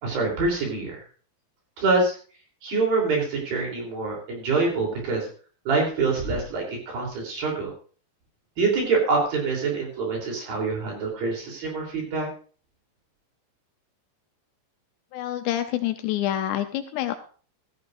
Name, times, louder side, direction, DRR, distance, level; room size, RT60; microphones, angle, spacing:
voice 1, 0.0-1.1 1.8-2.2 2.6-5.3 5.7-7.7 8.6-12.3, right 3 dB, 55° right, 0 dB, 4.9 m, -25 dB
voice 2, 15.1-17.1, left 12 dB, 80° left, 7 dB, 2.7 m, -27 dB
15.5 x 14.5 x 2.5 m, 0.40 s
omnidirectional pair, 5.2 m